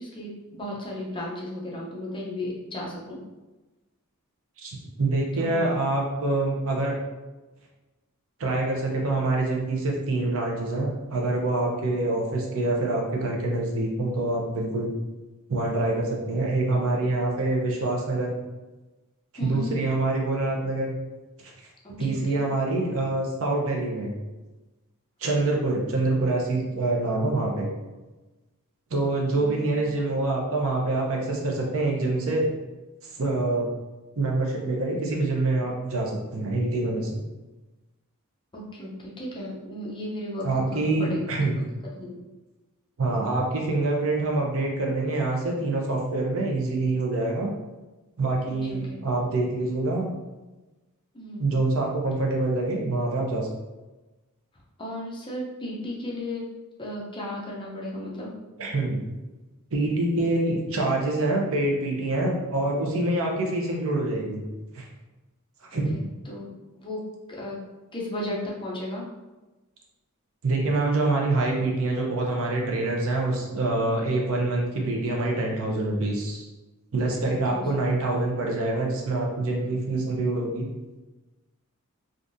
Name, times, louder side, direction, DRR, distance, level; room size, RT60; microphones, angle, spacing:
voice 1, 0.0-3.2 5.4-5.7 19.4-19.7 21.8-22.4 29.3-29.7 38.5-41.2 42.0-42.3 48.5-49.0 51.1-51.5 54.8-56.4 56.8-58.3 65.9-66.5 66.8-67.0 67.3-67.6 67.9-69.0 77.2-77.7, left 1 dB, 20° left, -4 dB, 0.6 m, -35 dB
voice 2, 4.6-7.0 8.4-14.9 15.5-18.3 19.4-20.9 21.4-21.5 22.0-24.1 25.2-27.7 28.9-32.5 33.1-33.7 34.2-37.2 40.4-41.5 43.0-47.5 48.2-50.1 51.4-53.5 58.6-59.1 59.7-64.4 64.7-64.9 65.7-65.9 70.4-76.5 76.9-80.6, right 2 dB, 65° right, 0 dB, 0.7 m, -26 dB
3.4 x 2.6 x 2.6 m, 1.1 s
head